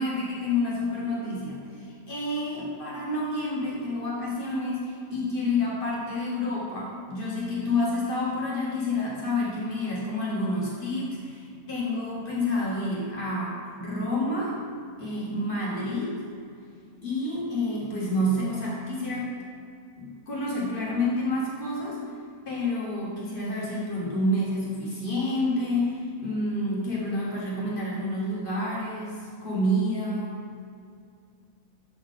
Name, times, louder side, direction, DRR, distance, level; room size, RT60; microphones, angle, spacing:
voice 1, 0.0-14.6 15.0-16.2 17.0-19.3 20.0-22.0 22.5-30.4, left 1 dB, 40° left, -6 dB, 1.1 m, -29 dB
7.2 x 3.5 x 3.7 m, 2.3 s
omnidirectional pair, 1.6 m